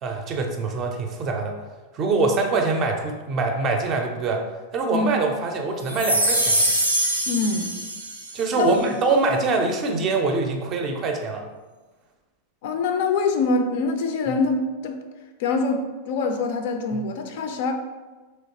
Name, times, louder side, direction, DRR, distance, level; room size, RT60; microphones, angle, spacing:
voice 1, 0.0-1.5 1.9-4.4 4.7-6.6 8.3-11.4 14.3-14.4 16.9-17.0, right 3 dB, 35° right, 3 dB, 0.5 m, -24 dB
sound 1, 5.9-8.4, right 1 dB, 80° right, 0.5 m, -23 dB
voice 2, 7.3-7.7 8.5-8.8 12.6-15.0 15.4-17.7, left 4 dB, 50° left, 5 dB, 0.3 m, -24 dB
3.3 x 2.8 x 2.7 m, 1.3 s
figure-of-eight pair, 90°, 0 cm